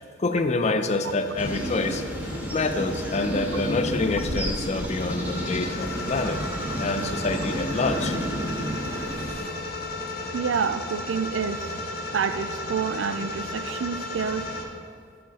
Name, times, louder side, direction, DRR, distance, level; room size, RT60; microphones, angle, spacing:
voice 1, 0.2-6.4 6.8-8.2 9.3-9.5, left 3 dB, 35° left, 8 dB, 0.5 m, -27 dB
sound 1, 0.9-14.6, left 1 dB, 55° left, 0.9 m, -35 dB
sound 2, 1.4-9.3, equal, 10° right, 0.8 m, -31 dB
voice 2, 10.3-11.7 12.1-14.5, right 6 dB, 80° right, 12 dB, 0.4 m, -28 dB
7.9 x 7.6 x 4.1 m, 2.2 s
head